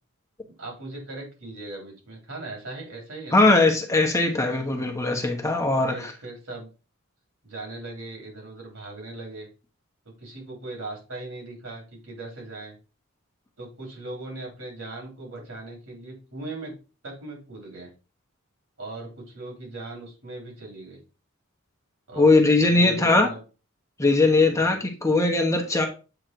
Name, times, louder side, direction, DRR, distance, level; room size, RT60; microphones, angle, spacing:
voice 1, 0.6-3.5 5.9-6.7 7.4-9.5 10.2-12.8 13.6-16.8 17.0-17.9 18.8-21.0 22.1-23.4 24.6-24.8, right 2 dB, 85° right, 3.7 m, -39 dB
voice 2, 3.3-6.1 22.2-23.3 24.0-25.9, left 2 dB, 15° left, 1.0 m, -20 dB
7.7 x 3.2 x 4.6 m
head